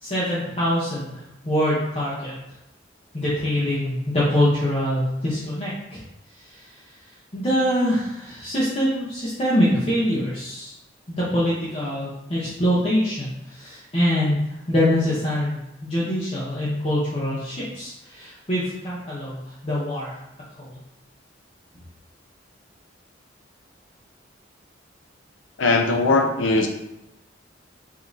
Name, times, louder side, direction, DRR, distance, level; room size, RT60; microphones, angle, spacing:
voice 1, 0.0-2.3 3.1-6.0 6.4-7.0 7.3-10.7 11.1-14.4 14.7-20.2 20.6-20.8, equal, 30° left, -8 dB, 0.7 m, -24 dB
voice 2, 25.6-26.7, left 3 dB, 90° left, 4 dB, 0.5 m, -19 dB
4.9 x 2.7 x 2.6 m, 0.90 s
head